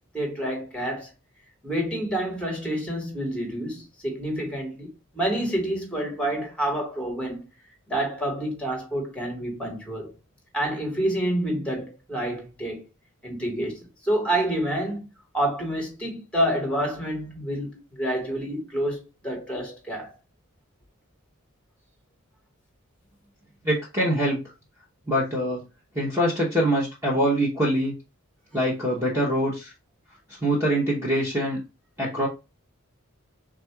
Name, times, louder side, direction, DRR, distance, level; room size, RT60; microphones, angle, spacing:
voice 1, 0.1-1.1 1.6-7.4 7.9-10.1 10.5-12.8 13.2-15.0 15.3-20.1, right 1 dB, 5° left, 1.3 m, -28 dB
voice 2, 23.6-24.4 25.1-25.6 25.9-27.9 28.5-29.7 30.3-31.6 32.0-32.3, equal, 10° right, 0.9 m, -24 dB
3.6 x 2.4 x 4.4 m
head